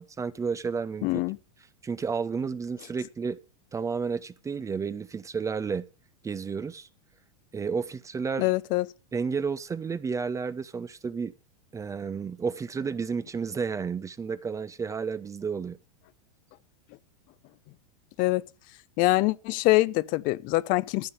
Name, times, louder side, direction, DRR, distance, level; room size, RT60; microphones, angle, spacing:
voice 1, 0.0-1.1 1.8-3.4 3.7-5.9 6.2-6.9 7.5-8.5 9.1-11.3 11.7-15.8, right 5 dB, 15° right, 0.6 m, -31 dB
voice 2, 1.0-1.4 8.4-8.9 18.2-18.4 19.0-21.1, left 20 dB, 45° left, 0.6 m, -24 dB
14.5 x 5.5 x 6.6 m
hypercardioid pair, 100°, 19 cm